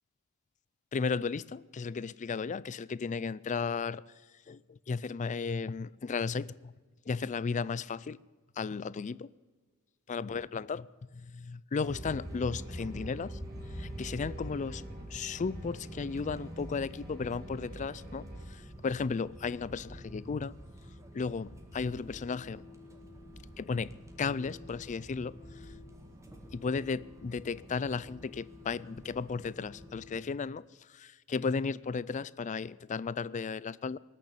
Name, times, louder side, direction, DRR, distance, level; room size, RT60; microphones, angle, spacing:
voice 1, 0.9-4.0 4.5-6.7 7.1-8.2 8.6-9.3 10.1-10.9 11.1-13.4 13.8-14.8 15.1-18.2 18.5-20.5 21.1-22.6 23.6-23.9 24.2-25.3 26.5-30.6 30.9-34.0, left 5 dB, 35° left, 0.4 m, -34 dB
sound 1, 11.7-18.4, right 2 dB, 45° right, 2.5 m, -53 dB
sound 2, 11.8-30.2, equal, 15° right, 1.8 m, -46 dB
19.0 x 6.8 x 10.0 m
head